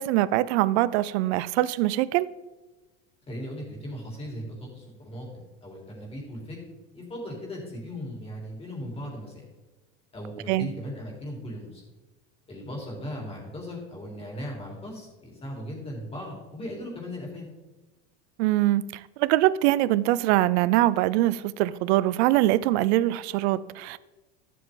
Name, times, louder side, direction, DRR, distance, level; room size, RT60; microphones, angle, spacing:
voice 1, 0.0-2.3 10.5-10.7 18.4-24.0, right 15 dB, 75° right, 0.5 m, -23 dB
voice 2, 3.3-6.6 6.9-9.4 10.1-11.8 12.5-17.5, equal, 15° left, 3.6 m, -38 dB
13.0 x 7.7 x 3.8 m
supercardioid pair, 150°, 33 cm